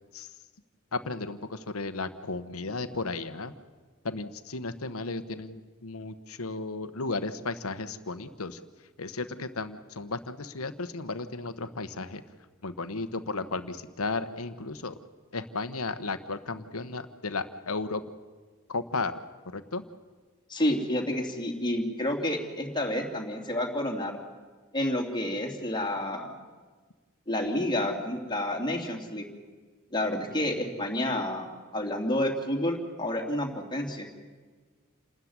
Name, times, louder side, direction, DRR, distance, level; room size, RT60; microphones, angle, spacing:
voice 1, 0.9-3.5 4.0-8.6 9.0-12.2 12.6-15.0 15.3-18.0 18.7-19.2 19.5-19.8, left 3 dB, 85° left, 11 dB, 1.1 m, -34 dB
voice 2, 20.5-24.1 24.7-26.4 27.3-29.3 29.9-34.1, left 1 dB, 20° left, 2 dB, 2.9 m, -29 dB
28.0 x 13.5 x 9.6 m, 1.4 s
head